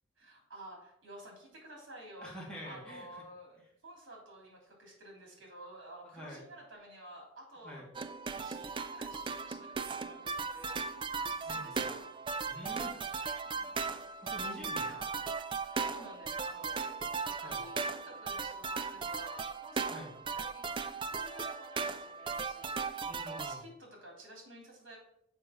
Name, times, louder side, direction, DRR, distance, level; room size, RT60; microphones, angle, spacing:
voice 1, 0.2-2.3 2.6-7.9 8.3-12.0 13.4-13.8 14.8-15.5 15.8-16.9 17.2-20.1 20.3-20.7 21.1-25.0, right 1 dB, 75° right, 0 dB, 3.3 m, -52 dB
voice 2, 2.2-3.1 6.1-6.4 7.6-7.9 11.4-11.8 12.4-12.9 14.2-14.9 17.4-17.6 19.9-20.1 23.1-23.6, equal, 5° left, -5 dB, 2.5 m, -46 dB
sound 1, 7.9-23.6, right 4 dB, 25° right, 0.4 m, -37 dB
7.0 x 5.2 x 5.8 m, 0.76 s
head